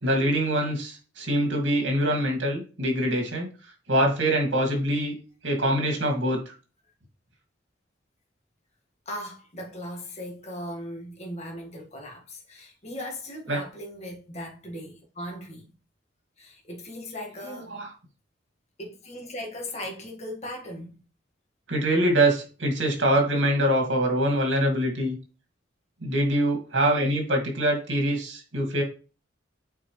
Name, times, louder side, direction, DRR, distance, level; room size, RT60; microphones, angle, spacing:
voice 1, 0.0-3.5 3.9-5.1 5.4-6.5 13.5-13.6 17.4-17.8 21.7-25.2 26.0-28.8, right 1 dB, 70° right, 2.4 m, -24 dB
voice 2, 9.1-15.7 16.4-17.7 18.8-21.0, left 1 dB, 35° left, 1.8 m, -38 dB
8.2 x 4.6 x 3.2 m
head